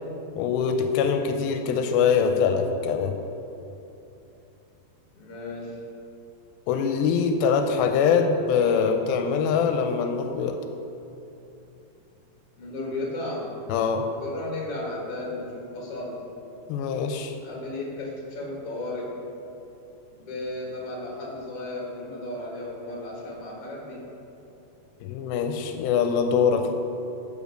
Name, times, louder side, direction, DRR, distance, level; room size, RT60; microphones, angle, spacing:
voice 1, 0.4-3.2 6.7-10.6 13.7-14.1 16.7-17.3 25.0-26.7, left 6 dB, 90° left, 6 dB, 2.4 m, -23 dB
voice 2, 5.1-5.8 12.6-13.6 14.2-16.2 17.4-19.1 20.1-24.0, left 2 dB, 45° left, -3 dB, 2.5 m, -34 dB
12.0 x 5.2 x 5.1 m, 2.8 s
omnidirectional pair, 4.2 m